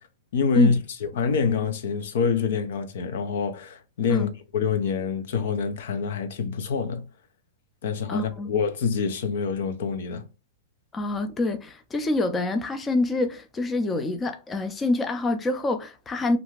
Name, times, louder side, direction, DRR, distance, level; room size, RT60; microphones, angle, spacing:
voice 1, 0.3-7.1 7.8-10.2, left 5 dB, 70° left, 0.6 m, -26 dB
voice 2, 8.1-8.5 10.9-16.4, left 2 dB, 15° left, 0.4 m, -26 dB
2.5 x 2.3 x 3.1 m
hypercardioid pair, 125°, 0 cm